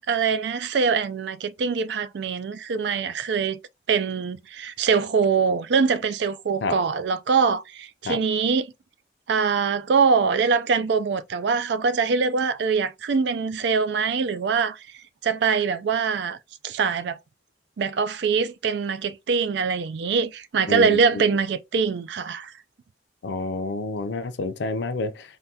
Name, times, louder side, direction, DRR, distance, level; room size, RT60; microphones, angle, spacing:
voice 1, 0.1-3.6 3.9-8.7 9.3-14.8 15.2-16.4 16.6-17.2 17.8-22.5, right 5 dB, 70° right, 0.4 m, -23 dB
voice 2, 20.7-21.3 23.2-25.2, left 3 dB, 70° left, 0.5 m, -28 dB
3.5 x 2.2 x 2.7 m
head